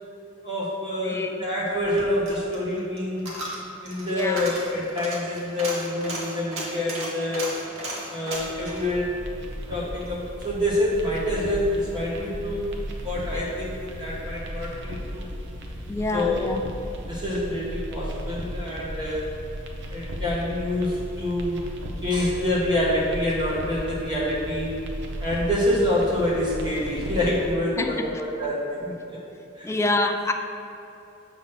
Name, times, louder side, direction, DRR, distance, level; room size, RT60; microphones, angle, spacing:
voice 1, 0.4-3.3 3.8-7.5 8.1-9.1 9.7-12.7 13.0-15.3 16.1-16.4 17.1-19.3 19.9-21.7 22.0-24.8 25.2-29.2 29.6-29.7, left 1 dB, 20° right, -6 dB, 1.0 m, -27 dB
voice 2, 1.0-1.4 4.1-4.5 15.9-16.6 27.8-27.9 29.6-30.3, left 2 dB, 15° left, 5 dB, 0.3 m, -26 dB
Coin (dropping), 1.7-10.2 10.5-10.6, right 1 dB, 80° right, 1.3 m, -36 dB
sound 1, 8.3-27.5, equal, 60° right, 0.7 m, -36 dB
7.6 x 3.0 x 5.8 m, 2.8 s
head